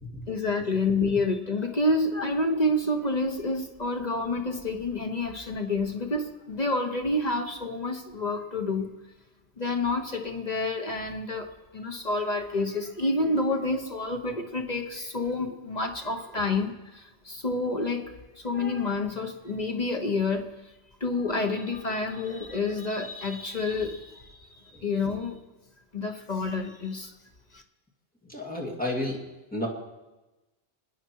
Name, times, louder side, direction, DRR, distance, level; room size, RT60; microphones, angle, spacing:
voice 1, 0.3-8.9 9.6-20.5 21.0-25.4 25.9-27.1 27.5-27.6, left 2 dB, 40° left, 4 dB, 1.2 m, -29 dB
voice 2, 28.3-29.2 29.5-29.7, left 1 dB, 10° left, -2 dB, 2.5 m, -31 dB
26.5 x 9.8 x 4.6 m, 1.1 s
omnidirectional pair, 1.1 m